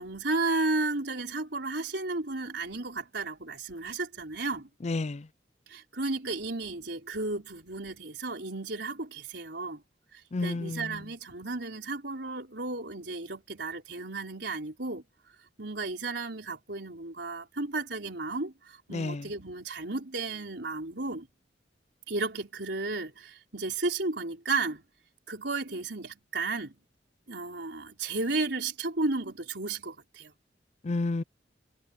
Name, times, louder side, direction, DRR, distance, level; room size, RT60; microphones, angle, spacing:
voice 1, 0.0-4.7 5.7-9.8 10.1-15.0 15.6-21.3 22.1-24.8 25.3-26.8 27.3-30.3, right 3 dB, 65° right, 5.2 m, -33 dB
voice 2, 4.8-5.2 10.3-10.9 18.9-19.2 30.8-31.2, left 3 dB, 40° left, 0.5 m, -30 dB
head